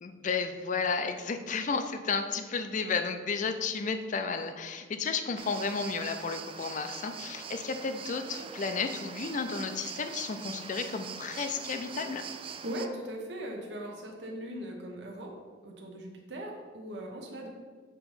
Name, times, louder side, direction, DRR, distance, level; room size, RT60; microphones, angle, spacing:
voice 1, 0.0-12.3, left 5 dB, 45° left, 8 dB, 0.4 m, -33 dB
sound 1, 5.4-12.9, right 6 dB, 30° right, 0.3 m, -43 dB
voice 2, 12.6-15.3 15.6-17.5, right 1 dB, 70° right, 0 dB, 0.9 m, -39 dB
6.9 x 3.0 x 5.4 m, 1.5 s
head